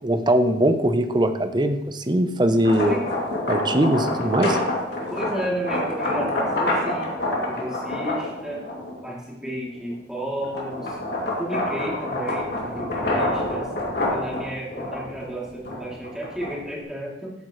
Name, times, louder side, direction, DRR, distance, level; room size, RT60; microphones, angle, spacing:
voice 1, 0.0-3.0 3.5-4.6, right 1 dB, 25° right, 9 dB, 0.7 m, -21 dB
sound 1, 2.5-9.1 9.6-16.8, left 1 dB, 60° left, 2.6 m, -27 dB
voice 2, 5.1-7.2 7.4-8.8 9.0-11.0 11.4-13.7 14.0-17.3, right 1 dB, 5° right, -5 dB, 2.9 m, -32 dB
14.0 x 8.7 x 3.2 m, 0.89 s
head